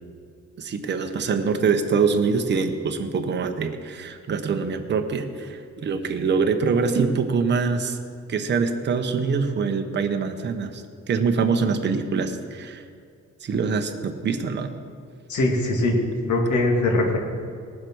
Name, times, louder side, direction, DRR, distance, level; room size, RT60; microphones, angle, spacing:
voice 1, 0.6-8.0 8.3-12.8 13.4-14.7, right 5 dB, 35° right, 5 dB, 1.0 m, -24 dB
voice 2, 15.3-16.0 16.2-17.2, left 2 dB, 75° left, 1 dB, 2.6 m, -21 dB
19.0 x 7.6 x 6.3 m, 2.2 s
cardioid pair, 170°, 30 cm